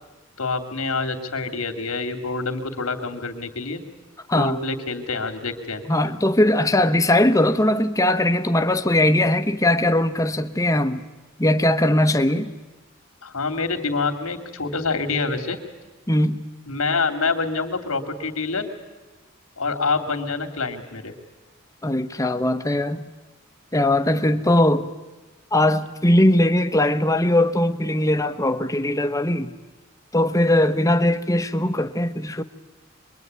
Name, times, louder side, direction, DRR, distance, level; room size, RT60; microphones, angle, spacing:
voice 1, 0.4-3.8 4.3-5.8 13.2-15.6 16.7-18.7 19.6-21.1, left 4 dB, 85° left, 2.8 m, -26 dB
voice 2, 4.3-4.6 5.9-11.0 11.4-12.5 16.1-16.5 21.8-23.1 23.7-24.9 25.5-29.5 30.1-32.4, left 1 dB, 15° left, 1.1 m, -20 dB
25.5 x 22.0 x 9.5 m
head